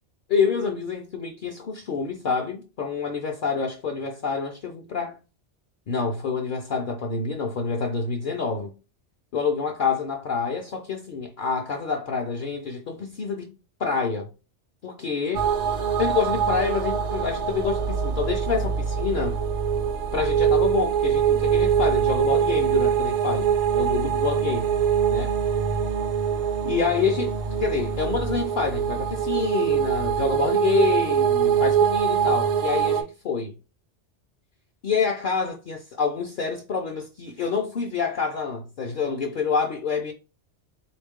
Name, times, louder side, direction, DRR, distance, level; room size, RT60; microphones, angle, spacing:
voice 1, 0.3-5.2 5.9-8.7 9.3-13.5 13.8-14.3 14.8-15.5 16.0-19.4 20.1-23.5 23.7-24.8 25.1-25.4 26.6-27.3 27.6-33.5 34.8-40.1, left 5 dB, 55° left, 0.6 m, -27 dB
sound 1, 15.3-33.0, right 8 dB, 85° right, 0.9 m, -23 dB
3.4 x 2.4 x 3.5 m
omnidirectional pair, 1.2 m